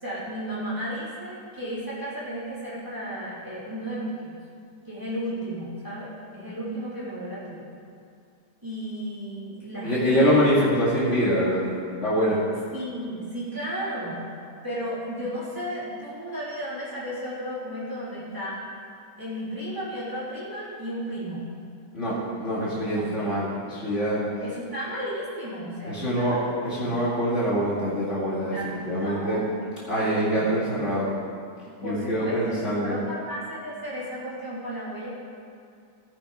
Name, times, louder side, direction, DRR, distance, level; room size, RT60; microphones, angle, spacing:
voice 1, 0.0-4.3 4.8-7.7 8.6-10.4 12.7-14.2 14.6-18.6 19.2-21.4 22.9-23.1 24.2-27.0 28.5-29.5 29.9-30.4 31.8-35.1, equal, 10° right, -10 dB, 3.2 m, -34 dB
voice 2, 9.8-11.6 11.9-12.5 21.9-24.2 25.9-26.4 26.6-28.6 28.9-29.4 29.9-31.1 31.8-33.0, equal, 45° left, -8 dB, 2.5 m, -24 dB
17.0 x 6.0 x 4.9 m, 2.3 s
omnidirectional pair, 1.7 m